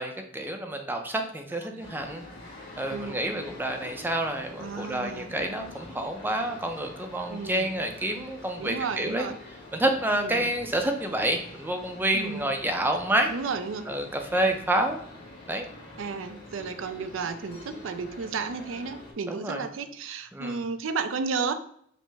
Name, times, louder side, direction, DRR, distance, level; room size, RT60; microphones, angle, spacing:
voice 1, 0.0-2.2 2.8-9.2 9.7-13.3 13.9-15.0 15.5-15.7 19.3-19.6 20.3-20.6, right 1 dB, 10° right, 4 dB, 0.4 m, -28 dB
sound 1, 1.8-19.1, left 2 dB, 60° left, 1.5 m, -46 dB
voice 2, 2.9-3.2 4.6-5.3 7.3-7.7 8.6-9.4 10.1-10.5 12.1-12.5 13.3-13.9 16.0-21.5, right 5 dB, 75° right, 10 dB, 0.4 m, -33 dB
5.3 x 2.0 x 3.3 m, 0.66 s
head